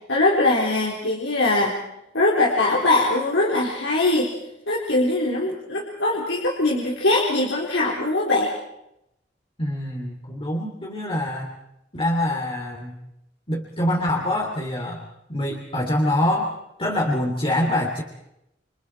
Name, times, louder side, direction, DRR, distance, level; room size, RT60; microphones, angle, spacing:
voice 1, 0.1-1.8 2.1-4.3 4.7-8.5, left 2 dB, 90° left, -3 dB, 4.1 m, -21 dB
voice 2, 9.6-11.5 11.9-12.9 13.5-16.5 16.8-18.0, left 1 dB, 30° left, -1 dB, 3.1 m, -25 dB
28.5 x 26.5 x 4.6 m, 0.84 s
head